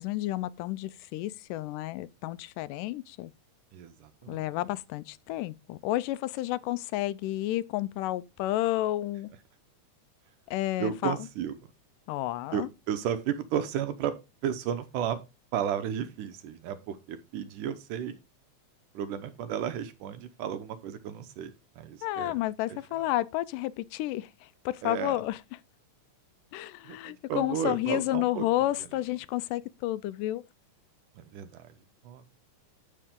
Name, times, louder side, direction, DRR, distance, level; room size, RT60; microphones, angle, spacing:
voice 1, 0.0-3.3 4.3-9.3 10.5-11.2 12.1-12.7 22.0-24.3 24.7-25.4 26.5-30.4, left 15 dB, 90° left, 2.2 m, -31 dB
voice 2, 3.7-4.4 10.8-11.6 12.5-14.2 14.4-15.2 15.5-18.2 18.9-22.4 22.7-23.1 24.8-25.2 26.8-28.4 28.8-28.9 31.2-31.7 32.0-32.3, right 9 dB, 80° right, 2.4 m, -33 dB
9.9 x 7.6 x 3.6 m
omnidirectional pair, 3.7 m